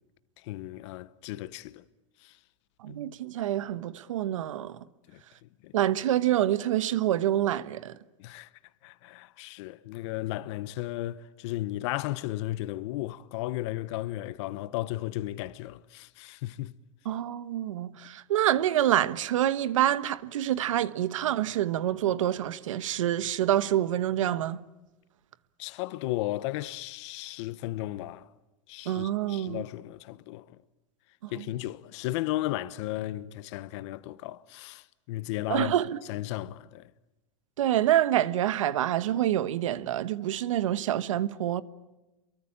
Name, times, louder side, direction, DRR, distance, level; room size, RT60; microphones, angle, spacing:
voice 1, 0.4-1.8 2.2-2.4 2.9-3.0 5.1-5.2 5.6-5.7 8.2-8.5 8.8-16.7 25.6-28.3 28.7-30.6 31.3-35.7 36.1-36.9, left 16 dB, 65° left, 1.0 m, -35 dB
voice 2, 2.8-4.8 5.7-7.9 17.0-24.6 28.9-29.6 31.2-31.4 35.5-35.9 37.6-41.6, right 12 dB, 90° right, 1.2 m, -27 dB
28.5 x 23.5 x 8.7 m
supercardioid pair, 125°, 16 cm